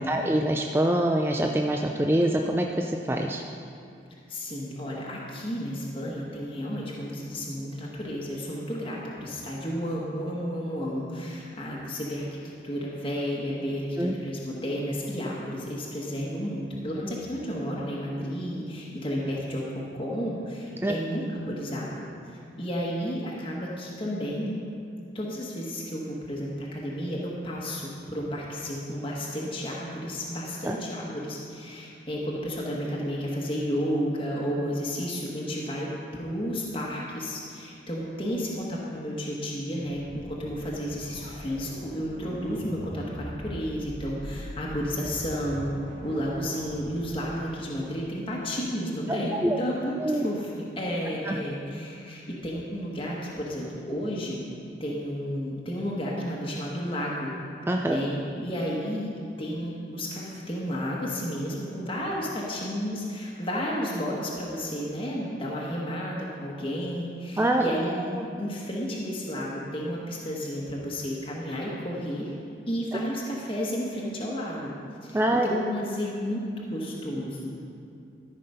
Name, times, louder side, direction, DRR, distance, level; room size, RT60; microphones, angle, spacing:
voice 1, 0.1-3.4 14.0-14.1 20.8-21.0 30.6-30.7 49.4-49.6 50.0-50.3 51.3-51.4 57.7-58.0 67.4-67.7 68.2-68.3 75.1-75.5, right 1 dB, 10° right, 2 dB, 0.3 m, -25 dB
voice 2, 4.3-12.4 12.6-24.6 25.1-45.7 46.0-54.4 54.8-57.3 57.9-59.1 59.4-68.1 68.4-72.3 72.7-74.7 75.0-77.5, equal, 30° left, -4 dB, 1.2 m, -32 dB
sound 1, 39.8-47.4, equal, 60° right, 1.8 m, -41 dB
13.0 x 5.7 x 5.5 m, 2.4 s
head